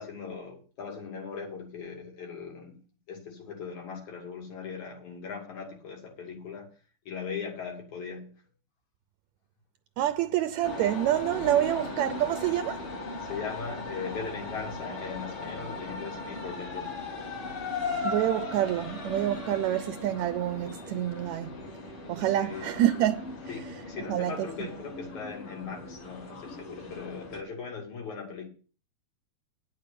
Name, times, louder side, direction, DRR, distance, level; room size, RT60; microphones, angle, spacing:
voice 1, 0.0-2.8 3.1-6.7 7.1-8.3 11.4-11.7 13.2-17.0 22.2-22.7 23.5-28.5, left 5 dB, 70° left, 3.9 m, -39 dB
voice 2, 10.0-12.8 18.0-21.5 22.1-23.3 24.1-24.3, right 12 dB, 75° right, 1.8 m, -27 dB
sound 1, 10.6-27.4, left 3 dB, 45° left, 2.9 m, -38 dB
9.9 x 6.8 x 6.8 m
omnidirectional pair, 3.5 m